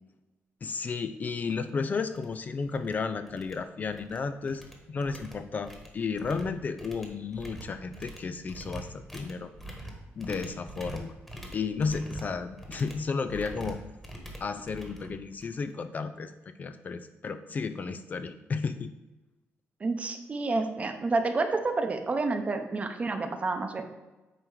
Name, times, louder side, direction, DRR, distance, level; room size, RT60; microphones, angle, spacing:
voice 1, 0.6-4.6 4.9-9.5 10.2-11.1 11.5-13.8 14.4-16.3 16.6-18.9, left 5 dB, 35° left, 10 dB, 0.4 m, -33 dB
sound 1, 1.6-1.7 2.1-2.3 2.6-2.9 3.3-4.2 4.5-15.7, right 1 dB, 5° left, 1.4 m, -44 dB
voice 2, 19.8-23.8, right 3 dB, 30° right, 7 dB, 0.8 m, -29 dB
9.0 x 3.0 x 6.4 m, 1.1 s
cardioid pair, 135°, 5 cm